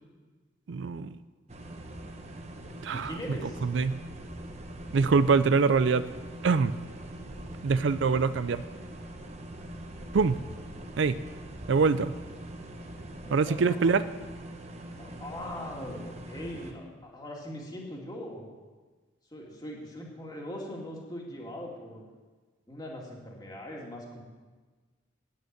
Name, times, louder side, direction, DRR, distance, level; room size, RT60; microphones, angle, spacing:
voice 1, 0.7-1.2 2.8-3.1 3.6-4.0 4.9-6.0 6.4-6.8 7.6-8.6 10.1-10.4 11.0-11.2 11.7-12.1 13.3-14.0, right 4 dB, 65° right, 14 dB, 0.4 m, -24 dB
sound 1, 1.5-16.7, right 1 dB, 35° right, 1.0 m, -43 dB
voice 2, 2.9-3.6 13.2-13.9 15.0-18.5 19.3-22.0 22.7-24.2, left 1 dB, 20° left, -1 dB, 2.3 m, -41 dB
9.3 x 8.7 x 9.4 m, 1.4 s
head